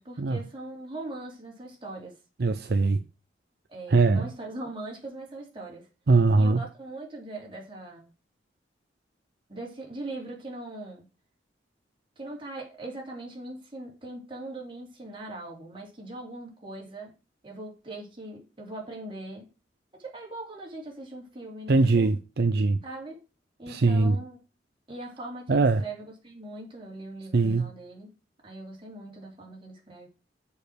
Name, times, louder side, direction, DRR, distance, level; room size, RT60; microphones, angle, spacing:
voice 1, 0.0-2.2 3.7-5.9 6.4-8.1 9.5-11.1 12.2-17.1 17.4-19.5 19.9-22.1 22.8-23.2 23.6-24.4 24.9-28.1 28.4-30.1, right 2 dB, 30° right, 3.1 m, -40 dB
voice 2, 2.4-3.0 3.9-4.3 6.1-6.6 21.7-22.8 23.7-24.2 25.5-25.8 27.3-27.7, right 3 dB, 60° right, 0.5 m, -21 dB
6.8 x 5.2 x 6.3 m
head